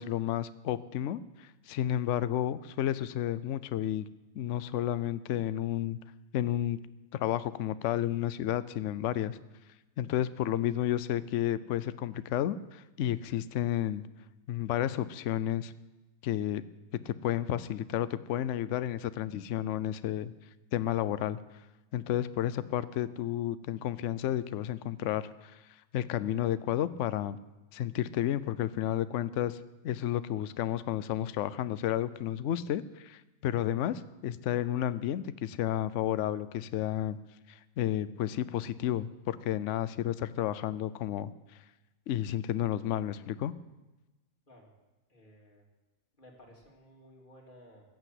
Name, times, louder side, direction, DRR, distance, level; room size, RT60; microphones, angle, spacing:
voice 1, 0.0-4.1 4.3-6.0 6.3-6.8 7.1-9.4 10.0-14.0 14.5-15.7 16.2-16.6 17.1-20.3 20.7-21.4 21.9-25.6 25.9-27.4 27.7-29.6 29.8-37.2 37.5-41.3 42.1-43.5, left 11 dB, 65° left, 15 dB, 0.9 m, -31 dB
voice 2, 45.1-45.6 46.2-47.8, equal, 35° left, -2 dB, 3.2 m, -56 dB
15.0 x 9.0 x 8.0 m, 1.1 s
omnidirectional pair, 1.6 m